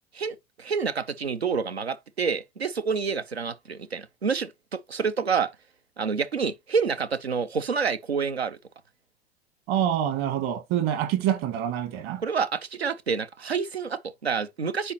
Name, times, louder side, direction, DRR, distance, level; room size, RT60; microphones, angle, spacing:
voice 1, 0.1-4.5 4.9-5.5 6.0-8.6 12.2-14.9, right 5 dB, 90° right, 0.7 m, -28 dB
voice 2, 9.7-12.2, right 10 dB, 50° right, 1.5 m, -26 dB
9.7 x 4.3 x 2.9 m
figure-of-eight pair, 80°, 31 cm